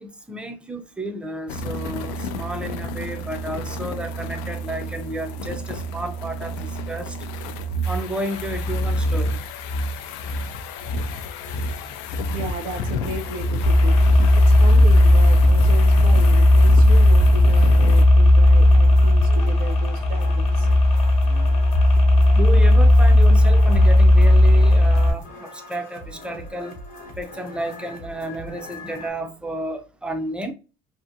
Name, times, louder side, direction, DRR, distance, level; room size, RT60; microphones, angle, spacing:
voice 1, 0.0-7.1 7.9-9.4 22.3-26.8 27.2-30.5, right 1 dB, 5° right, 0.3 m, -32 dB
sound 1, 1.5-18.1, equal, 85° left, 0.4 m, -29 dB
voice 2, 12.3-14.0 14.4-20.7, right 3 dB, 60° right, 0.5 m, -35 dB
sound 2, 13.6-25.1, left 1 dB, 35° left, 1.0 m, -14 dB
sound 3, 18.4-29.1, left 1 dB, 60° left, 0.8 m, -40 dB
2.6 x 2.5 x 2.5 m
cardioid pair, 145°, 16 cm